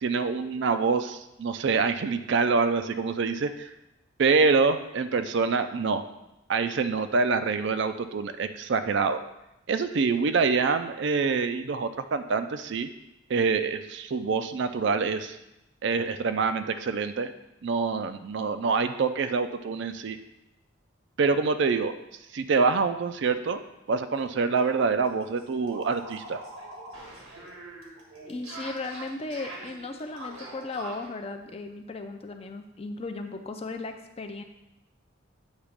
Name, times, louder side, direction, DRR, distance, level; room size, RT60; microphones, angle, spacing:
voice 1, 0.0-3.7 4.2-6.0 6.5-9.2 9.7-12.9 13.3-15.4 15.8-17.3 17.6-20.2 21.2-21.9 22.3-23.6 23.9-26.4, right 4 dB, 60° right, 9 dB, 0.4 m, -26 dB
sound 1, 24.1-24.3 24.6-24.7 25.0-31.1, right 1 dB, 90° right, 1.5 m, -43 dB
voice 2, 28.3-34.4, left 3 dB, 30° left, 6 dB, 0.4 m, -36 dB
8.2 x 3.0 x 5.0 m, 0.90 s
head